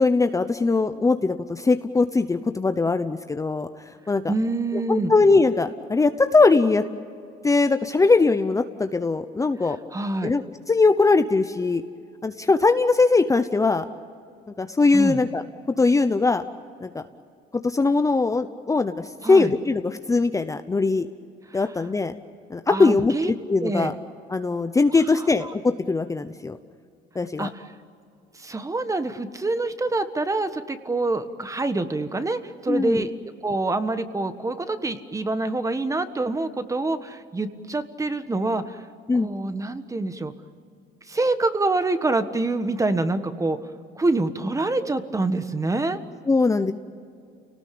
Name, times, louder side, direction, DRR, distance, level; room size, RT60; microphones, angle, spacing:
voice 1, 0.0-3.7 4.1-4.3 4.9-6.8 7.4-9.8 10.2-11.8 12.2-13.9 14.6-15.4 15.8-16.4 16.8-17.0 17.6-21.1 21.5-22.1 22.5-23.9 24.3-26.6 27.1-27.5 32.7-33.1 39.1-39.3 46.3-46.7, left 3 dB, 15° left, 9 dB, 0.8 m, -21 dB
voice 2, 4.3-5.1 9.9-10.3 14.9-15.2 19.2-19.5 21.5-21.6 22.7-23.3 23.6-23.9 24.9-25.5 27.4-27.6 28.3-33.1 33.4-38.8 39.1-40.3 41.1-43.6 43.9-46.0, right 2 dB, 15° right, 10 dB, 1.4 m, -26 dB
29.0 x 18.5 x 8.7 m, 2.4 s
cardioid pair, 110°, 19 cm